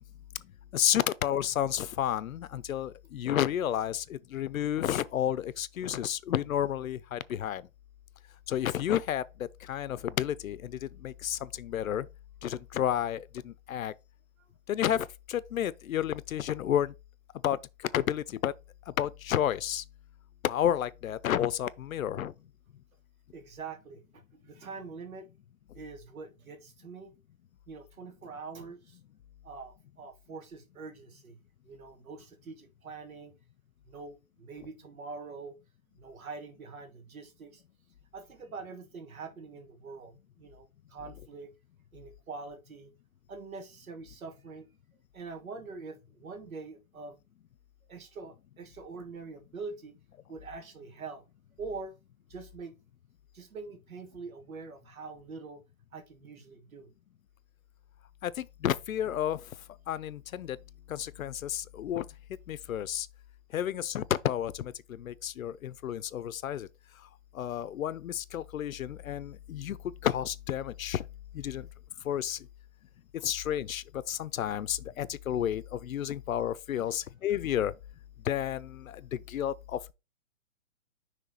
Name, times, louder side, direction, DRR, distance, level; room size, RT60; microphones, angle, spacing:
voice 1, 0.7-7.6 8.5-9.2 9.7-10.7 11.0-12.1 12.4-13.9 14.7-16.9 17.4-17.6 17.9-18.5 19.0-19.8 20.4-22.3 58.2-59.4 59.9-60.6 60.9-62.0 62.5-63.1 63.5-66.7 67.4-69.8 70.0-71.0 71.3-71.7 72.1-72.4 73.2-77.7 78.3-79.0 79.3-79.9, left 10 dB, 80° left, 0.7 m, -31 dB
voice 2, 23.3-25.3 25.7-27.1 27.7-29.0 29.4-31.4 31.6-33.3 33.8-35.6 36.0-37.6 38.1-41.5 41.9-42.9 43.3-44.7 45.1-47.2 47.9-50.0 50.3-51.2 51.6-51.9 52.3-52.8 53.3-55.6 55.9-56.9 76.8-76.9, right 4 dB, 85° right, 1.6 m, -44 dB
5.9 x 3.4 x 5.1 m
hypercardioid pair, 170°, 41 cm